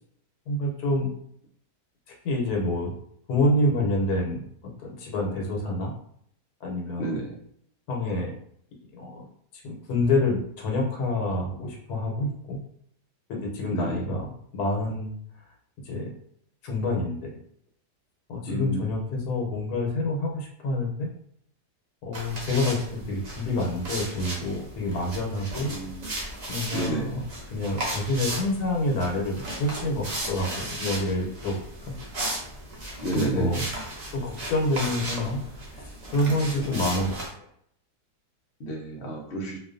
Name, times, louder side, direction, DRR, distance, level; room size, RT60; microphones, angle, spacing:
voice 1, 0.5-1.1 2.2-2.9 3.3-4.4 4.8-5.9 6.6-7.1 7.9-8.3 8.9-9.3 9.6-12.6 13.3-15.1 15.8-16.1 16.6-17.4 18.3-21.1 22.0-25.7 26.5-27.3 27.5-31.9 33.1-33.7 34.1-35.4 36.1-37.5, left 1 dB, 80° left, 0 dB, 1.2 m, -27 dB
voice 2, 7.0-7.3 13.7-14.0 18.5-18.8 25.7-26.0 26.7-27.1 33.0-33.5 36.7-36.8 38.6-39.6, right 1 dB, 55° left, -1 dB, 0.7 m, -30 dB
sound 1, 22.1-37.3, right 1 dB, 60° right, 0.4 m, -36 dB
2.5 x 2.4 x 2.4 m, 0.67 s
omnidirectional pair, 1.6 m